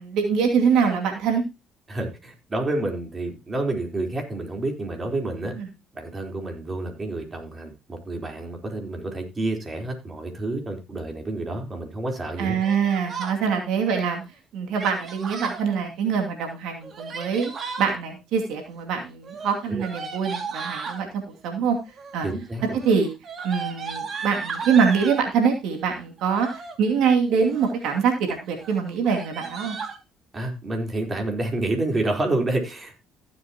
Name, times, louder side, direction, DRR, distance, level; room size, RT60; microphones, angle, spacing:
voice 1, 0.0-1.4 5.6-5.7 12.4-14.2 14.5-17.5 17.8-21.8 22.1-22.3 22.8-23.1 23.4-26.5 26.8-29.8, right 6 dB, 75° right, 2 dB, 2.5 m, -24 dB
voice 2, 1.9-5.5 5.9-12.5 19.7-19.9 22.2-22.8 30.3-33.0, right 2 dB, 30° right, 3 dB, 4.0 m, -29 dB
Yell, 12.6-13.4 14.7-15.6 16.8-17.9 19.2-21.0 21.9-22.3 22.6-25.2 26.2-26.8 27.3-27.8 28.2-28.4 28.6-28.7 29.0-30.0, right 5 dB, 50° right, 2.4 m, -35 dB
15.5 x 7.3 x 3.0 m, 0.26 s
supercardioid pair, 70°, 0 cm